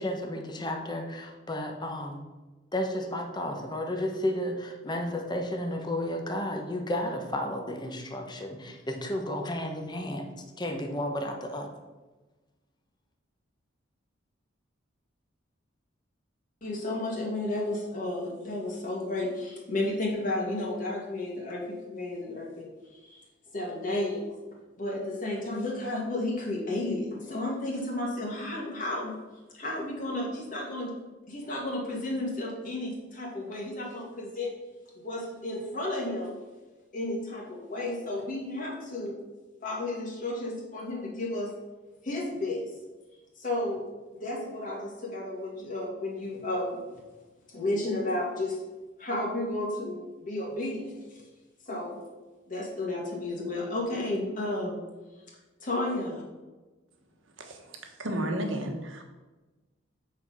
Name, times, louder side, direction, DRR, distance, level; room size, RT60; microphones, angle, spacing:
voice 1, 0.0-2.2 2.7-11.7, left 1 dB, 20° left, 3 dB, 1.0 m, -32 dB
voice 2, 16.6-23.2 23.5-24.4 24.8-29.1 29.5-30.9 31.3-34.5 35.0-36.3 36.9-39.2 39.6-41.5 42.0-42.7 43.4-43.8 44.1-46.8 47.5-48.6 49.0-51.2 51.7-52.0 52.5-54.8 55.6-56.2, left 1 dB, 45° left, -2 dB, 2.0 m, -32 dB
voice 3, 57.4-59.0, right 1 dB, 90° right, 4 dB, 1.3 m, -33 dB
8.4 x 4.7 x 5.4 m, 1.2 s
head